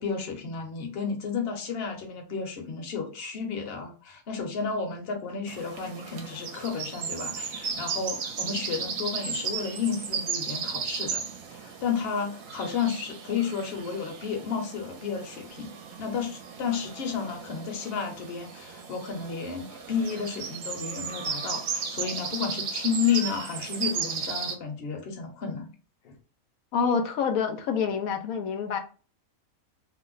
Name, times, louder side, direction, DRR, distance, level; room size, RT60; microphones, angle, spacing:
voice 1, 0.0-11.2 11.5-15.7 16.0-25.7 26.0-26.1, left 6 dB, 50° left, 0.9 m, -32 dB
sound 1, 5.5-24.5, right 6 dB, 70° right, 1.0 m, -35 dB
voice 2, 26.7-28.8, left 6 dB, 90° left, 1.0 m, -27 dB
2.7 x 2.1 x 3.7 m
omnidirectional pair, 1.5 m